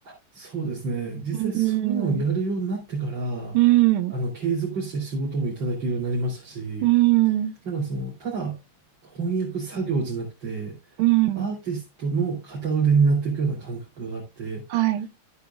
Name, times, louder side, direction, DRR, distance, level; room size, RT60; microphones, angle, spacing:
voice 1, 0.1-3.6 4.1-6.9 7.7-8.6 9.0-10.8 11.4-14.6, right 4 dB, 65° right, 3.5 m, -27 dB
voice 2, 1.4-2.2 3.5-4.1 6.8-7.5 11.0-11.5 14.7-15.1, right 18 dB, 85° right, 1.7 m, -20 dB
12.5 x 8.2 x 2.2 m
omnidirectional pair, 2.2 m